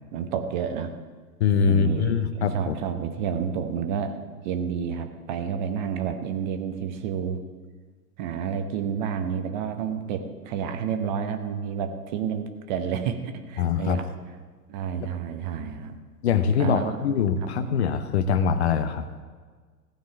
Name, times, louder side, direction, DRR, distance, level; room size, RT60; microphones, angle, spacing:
voice 1, 0.1-0.9 1.6-4.1 4.4-7.4 8.2-14.1 14.7-15.9 16.6-17.0 17.6-17.7, right 7 dB, 30° right, 7 dB, 0.8 m, -30 dB
voice 2, 1.4-2.7 13.6-14.0 16.2-19.1, left 6 dB, 40° left, 11 dB, 0.8 m, -23 dB
15.5 x 5.6 x 8.5 m, 1.5 s
figure-of-eight pair, 115°, 49 cm